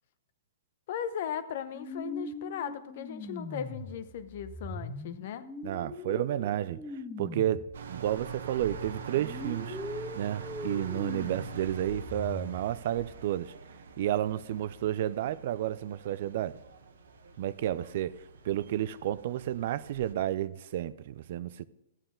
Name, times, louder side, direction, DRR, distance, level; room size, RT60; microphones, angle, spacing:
voice 1, 0.9-5.5, left 9 dB, 55° left, 0.8 m, -37 dB
sound 1, 1.7-7.8 8.1-13.1, left 2 dB, 5° left, 1.2 m, -41 dB
voice 2, 5.6-7.6 7.9-9.8 10.1-13.5 14.0-16.6 17.4-21.7, right 12 dB, 55° right, 0.4 m, -31 dB
sound 2, 7.7-20.1, right 6 dB, 75° right, 1.0 m, -45 dB
12.5 x 8.9 x 3.8 m
hypercardioid pair, 125°, 0 cm